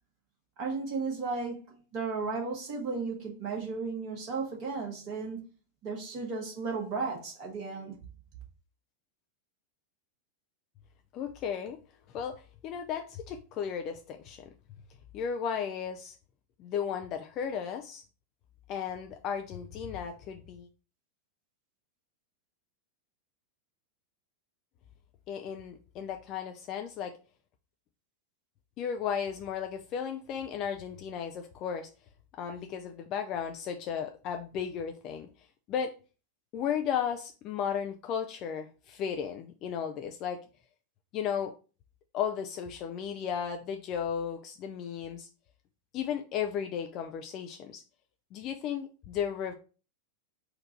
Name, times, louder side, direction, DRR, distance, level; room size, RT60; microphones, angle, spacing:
voice 1, 0.6-5.4 5.8-7.9, right 4 dB, 40° right, 1.7 m, -34 dB
voice 2, 11.1-11.8 12.1-14.5 15.1-16.1 16.6-18.0 18.7-20.7 25.3-27.1 28.8-31.9 32.4-35.3 35.7-35.9 36.5-40.4 41.1-41.5 42.1-45.3 45.9-47.8 48.3-49.5, left 8 dB, 35° left, 0.4 m, -34 dB
4.3 x 2.5 x 4.3 m
figure-of-eight pair, 90°, 0 cm